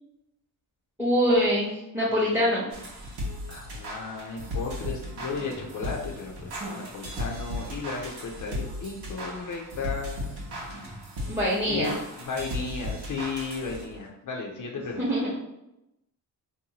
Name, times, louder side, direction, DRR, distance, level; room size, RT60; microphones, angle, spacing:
voice 1, 1.0-2.7 11.3-11.9 15.0-15.3, equal, 5° right, -7 dB, 0.7 m, -24 dB
sound 1, 2.7-14.1, left 1 dB, 75° right, 0.9 m, -36 dB
voice 2, 3.5-10.4 11.6-15.2, left 4 dB, 50° left, 0 dB, 0.5 m, -35 dB
2.7 x 2.3 x 2.8 m, 0.90 s
cardioid pair, 75°, 41 cm